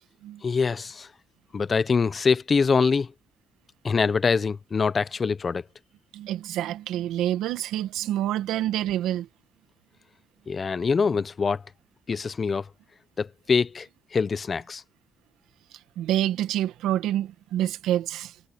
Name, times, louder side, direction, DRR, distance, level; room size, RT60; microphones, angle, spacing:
voice 1, 0.4-1.1 1.5-3.1 3.8-5.6 10.5-11.6 12.1-12.7 13.2-14.8, left 5 dB, 40° left, 0.8 m, -24 dB
voice 2, 6.1-9.3 16.0-18.3, right 12 dB, 90° right, 1.7 m, -27 dB
cardioid pair, 90°, 0 cm